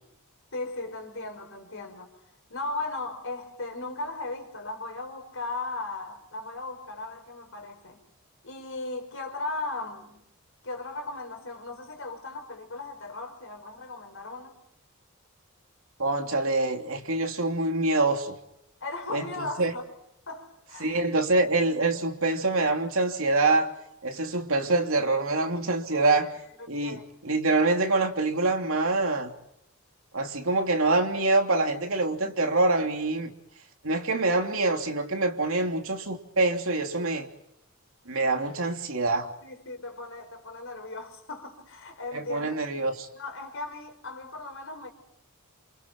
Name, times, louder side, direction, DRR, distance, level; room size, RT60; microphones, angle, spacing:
voice 1, 0.5-2.1 2.5-8.0 8.4-10.2 10.6-14.6 18.8-19.8 20.3-21.0 25.9-26.1 26.6-27.1 39.4-42.6 43.1-44.9, left 2 dB, 60° left, 5.3 m, -37 dB
voice 2, 16.0-18.4 19.1-19.7 20.8-23.7 24.0-26.3 26.7-29.3 30.1-33.3 33.8-37.3 38.1-39.3 42.1-43.1, right 2 dB, 65° right, 3.0 m, -25 dB
28.5 x 28.0 x 4.6 m
head